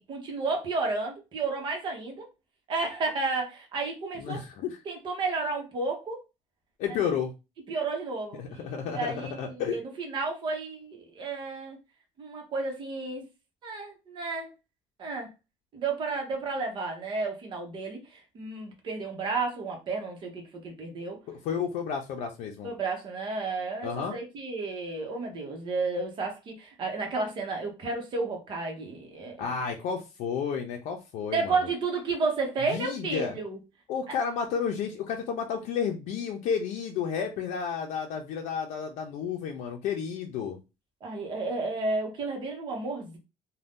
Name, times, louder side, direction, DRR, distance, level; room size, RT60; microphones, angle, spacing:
voice 1, 0.0-2.3 2.7-4.4 4.8-6.2 6.9-7.0 7.7-11.8 12.2-13.2 13.6-14.5 15.0-15.3 15.7-21.2 22.6-29.5 31.3-33.6 34.1-34.2 41.0-43.2, right 3 dB, 40° right, 2 dB, 0.9 m, -32 dB
voice 2, 4.2-4.8 6.8-7.3 8.4-9.8 21.3-22.7 23.8-24.2 29.4-31.6 32.7-33.4 33.9-40.6, left 7 dB, 80° left, 2 dB, 0.5 m, -31 dB
2.6 x 2.2 x 3.5 m, 0.27 s
cardioid pair, 175°, 12 cm